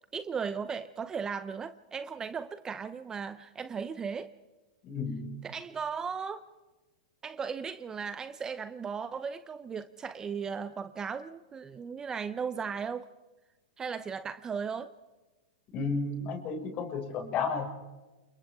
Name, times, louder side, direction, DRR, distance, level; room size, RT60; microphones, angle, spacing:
voice 1, 0.1-4.3 5.4-6.4 7.2-13.1 13.8-14.9, right 6 dB, 20° right, 12 dB, 0.7 m, -36 dB
voice 2, 4.8-5.3 15.7-17.7, left 4 dB, 35° left, 2 dB, 6.2 m, -32 dB
29.5 x 28.5 x 3.7 m, 1.2 s
hypercardioid pair, 125°, 4 cm